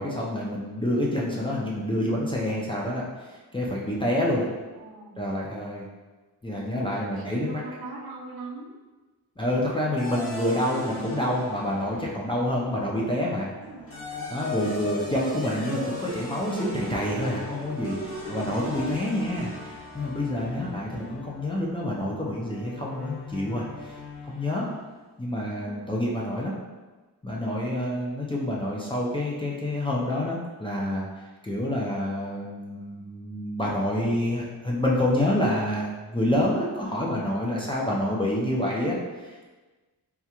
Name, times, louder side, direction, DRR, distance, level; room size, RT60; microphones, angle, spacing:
voice 1, 0.0-4.5 5.2-5.9 6.4-7.6 9.4-13.5 14.3-23.9 24.2-24.7 25.2-26.5 27.2-39.5, left 1 dB, 15° left, -5 dB, 0.4 m, -28 dB
voice 2, 4.7-5.2 6.7-8.8 13.4-14.0 25.6-25.9, right 3 dB, 70° right, -1 dB, 0.6 m, -42 dB
sound 1, 10.0-12.5 13.6-24.7, left 2 dB, 35° left, 0.9 m, -38 dB
3.6 x 2.2 x 2.9 m, 1.3 s
wide cardioid pair, 135°, 38 cm